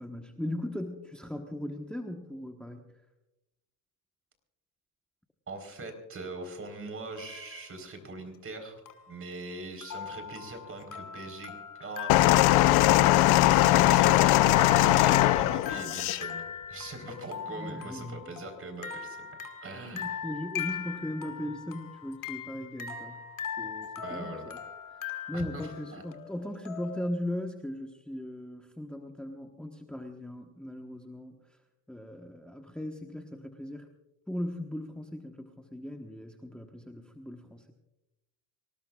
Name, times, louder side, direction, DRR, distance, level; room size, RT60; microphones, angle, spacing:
voice 1, 0.0-2.8 17.5-18.4 19.9-23.2 23.6-24.6 24.9-31.4 31.9-33.9 34.3-37.7, left 1 dB, 5° left, 3 dB, 1.2 m, -38 dB
voice 2, 5.5-8.8 9.1-19.3 19.6-20.2 24.0-24.5 25.3-26.0, right 2 dB, 35° right, 6 dB, 4.2 m, -42 dB
sound 1, 7.2-7.6 8.9-27.1, left 7 dB, 55° left, 1.9 m, -41 dB
sound 2, 12.1-16.2 17.1-17.2, left 16 dB, 80° left, 0.7 m, -21 dB
25.5 x 18.5 x 2.4 m, 0.96 s
cardioid pair, 100°, 38 cm